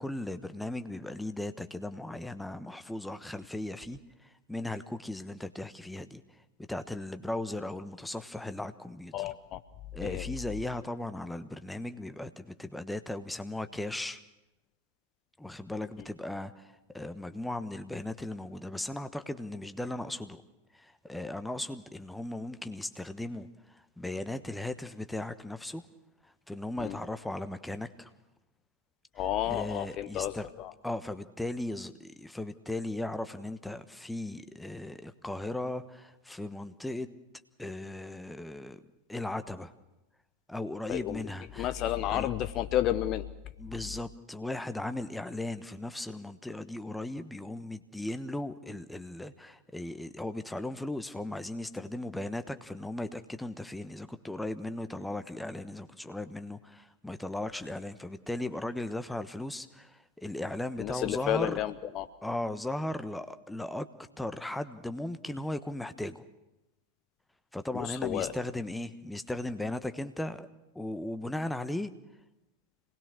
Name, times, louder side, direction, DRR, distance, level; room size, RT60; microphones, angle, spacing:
voice 1, 0.0-6.2 6.7-9.1 9.9-14.2 15.4-20.4 20.7-25.8 26.5-28.1 29.5-30.5 30.8-37.1 37.6-38.8 39.1-39.7 40.5-41.7 42.1-42.3 43.6-61.6 62.2-63.9 64.2-66.2 67.5-70.5 70.7-71.9, left 1 dB, 5° left, 10 dB, 1.2 m, -37 dB
voice 2, 9.1-9.6 10.0-10.3 26.8-27.0 29.1-30.7 40.9-41.2 41.6-43.3 60.8-62.1 67.7-68.3, left 12 dB, 35° left, 12 dB, 0.9 m, -31 dB
26.5 x 20.0 x 6.5 m, 0.98 s
figure-of-eight pair, 90°, 0 cm